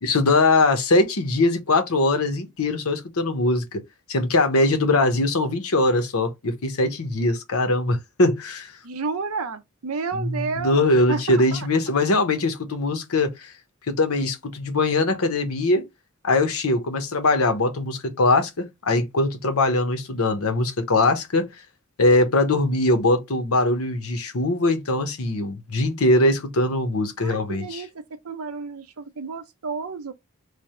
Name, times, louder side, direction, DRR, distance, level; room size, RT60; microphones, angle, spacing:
voice 1, 0.0-3.6 4.1-8.7 10.1-13.5 13.9-15.8 16.2-21.5 22.0-27.8, left 2 dB, 85° left, 0.9 m, -21 dB
voice 2, 8.8-11.7 27.2-27.9 28.2-30.1, right 4 dB, 85° right, 0.6 m, -31 dB
3.3 x 2.1 x 4.2 m
head